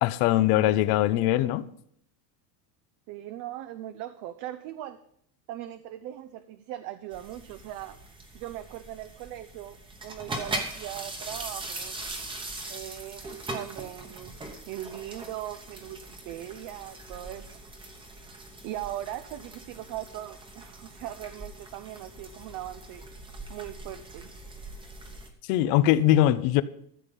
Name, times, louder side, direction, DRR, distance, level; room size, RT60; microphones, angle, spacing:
voice 1, 0.0-1.7 25.5-26.6, left 13 dB, 45° left, 0.6 m, -21 dB
voice 2, 3.1-5.0 5.5-8.0 8.3-9.8 10.0-12.0 12.7-14.3 14.6-17.6 18.6-23.0 23.5-24.3, right 13 dB, 40° right, 0.5 m, -39 dB
sound 1, 7.1-25.3, right 2 dB, 10° right, 1.0 m, -41 dB
13.5 x 7.5 x 5.3 m
cardioid pair, 170°, 48 cm